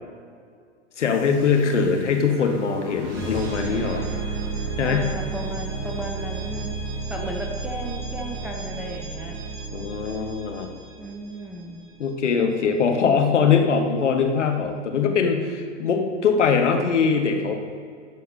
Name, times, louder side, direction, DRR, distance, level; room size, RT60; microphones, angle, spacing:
voice 1, 1.0-4.0 4.8-5.1 9.7-10.7 12.0-17.5, left 5 dB, 70° left, 4 dB, 1.4 m, -22 dB
sound 1, 1.0-11.8, right 4 dB, 35° right, 2.1 m, -33 dB
voice 2, 4.8-9.4 11.0-11.9, right 1 dB, 5° right, -1 dB, 0.4 m, -35 dB
13.0 x 4.7 x 5.2 m, 2.2 s
figure-of-eight pair, 100°, 37 cm